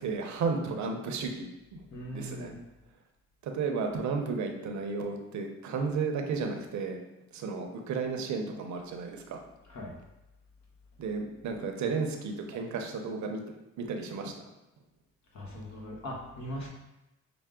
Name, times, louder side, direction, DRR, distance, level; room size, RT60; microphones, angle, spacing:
voice 1, 0.0-1.8 2.1-2.5 3.4-7.0 7.3-9.4 11.0-13.4 13.8-14.3, right 4 dB, 70° right, 4 dB, 0.7 m, -33 dB
voice 2, 1.9-2.6 9.6-9.9 15.3-16.7, equal, 65° left, -3 dB, 1.1 m, -40 dB
5.8 x 2.0 x 3.7 m, 0.95 s
cardioid pair, 90°, 30 cm